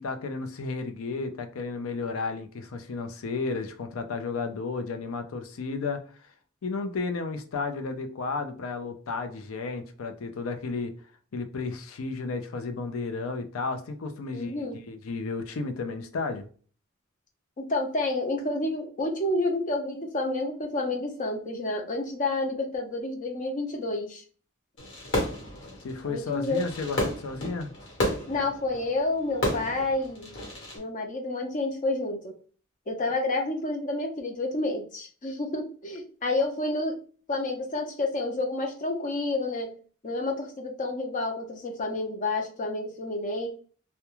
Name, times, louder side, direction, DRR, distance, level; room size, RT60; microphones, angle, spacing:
voice 1, 0.0-6.0 6.6-10.9 11.3-16.5 25.8-27.7, left 4 dB, 85° left, 0.5 m, -33 dB
voice 2, 14.3-14.8 17.6-24.2 26.0-26.6 28.3-30.3 30.7-32.3 32.9-37.0 37.3-39.7 40.0-43.5, left 2 dB, 40° left, 0.5 m, -29 dB
Fireworks, 24.8-30.8, left 1 dB, 65° left, 1.1 m, -32 dB
2.3 x 2.1 x 2.9 m
head